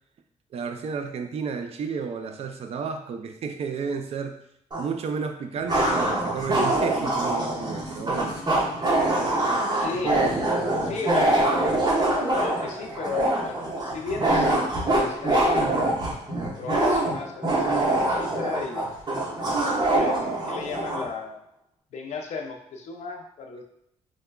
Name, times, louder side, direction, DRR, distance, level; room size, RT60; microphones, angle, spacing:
voice 1, 0.5-4.4 4.8-8.4 9.3-9.4, right 5 dB, 60° right, 7 dB, 0.4 m, -32 dB
sound 1, 4.7-4.8 5.7-21.1, right 2 dB, 35° right, 1.0 m, -24 dB
sound 2, 5.5-12.9, left 2 dB, 40° left, 0.9 m, -42 dB
voice 2, 9.7-10.2 10.8-11.8 12.2-14.5 14.9-16.0 16.6-18.9 19.8-21.4 21.9-23.6, left 4 dB, 70° left, 2 dB, 0.5 m, -34 dB
4.6 x 2.2 x 2.2 m, 0.76 s
cardioid pair, 110°, 12 cm